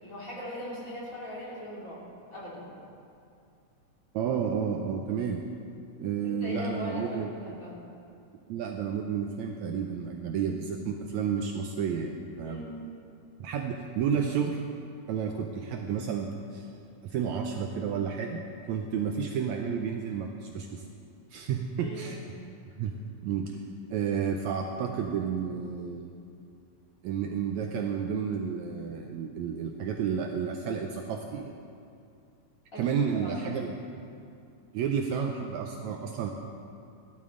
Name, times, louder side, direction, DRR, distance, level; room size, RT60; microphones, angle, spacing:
voice 1, 0.0-2.0 2.3-2.7 6.2-7.7 12.4-12.8 21.8-22.3 32.7-33.0 33.2-33.7, equal, 25° left, -7 dB, 2.8 m, -40 dB
voice 2, 4.1-5.4 6.0-7.3 8.5-12.6 13.4-14.6 15.1-16.7 17.0-18.4 18.7-20.8 21.3-22.2 22.8-22.9 23.2-23.6 23.9-26.1 27.0-31.6 32.8-33.7 34.7-36.3, right 7 dB, 75° right, 3 dB, 1.8 m, -31 dB
16.0 x 12.0 x 3.8 m, 2.5 s
omnidirectional pair, 3.6 m